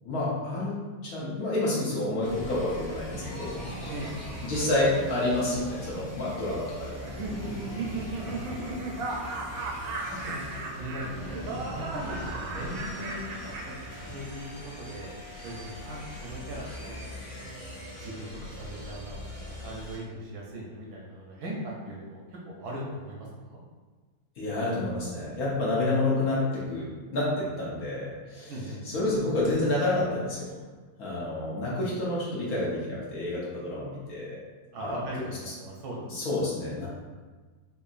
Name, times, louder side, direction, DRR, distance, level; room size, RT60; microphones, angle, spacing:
voice 1, 0.0-0.7 1.0-3.5 4.4-7.1 8.2-8.4 24.4-28.6 28.8-30.5 31.0-34.4 34.8-35.1 36.0-36.9, left 2 dB, 60° left, -7 dB, 1.3 m, -29 dB
sound 1, 2.2-20.0, left 1 dB, 30° left, 1.3 m, -41 dB
Laughter, 3.2-6.0, left 1 dB, 5° right, 0.5 m, -47 dB
Laughter 2, 7.0-14.5, right 3 dB, 90° right, 1.3 m, -36 dB
voice 2, 9.5-10.5 10.8-11.4 11.8-15.1 15.4-17.5 18.0-23.6 28.5-28.8 34.7-36.2, right 1 dB, 70° right, -3 dB, 1.0 m, -40 dB
4.6 x 2.7 x 2.4 m, 1.4 s
omnidirectional pair, 1.9 m